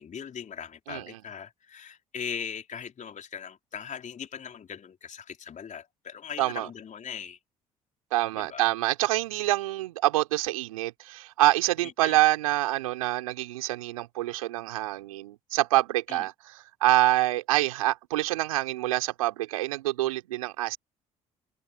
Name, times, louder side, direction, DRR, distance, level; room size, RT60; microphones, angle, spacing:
voice 1, 0.0-7.4 8.3-8.7 11.8-12.2 16.1-16.3, left 7 dB, 45° left, 4.1 m, -40 dB
voice 2, 0.9-1.2 6.4-6.7 8.1-20.8, right 16 dB, 85° right, 4.0 m, -26 dB
hypercardioid pair, 50°, 17 cm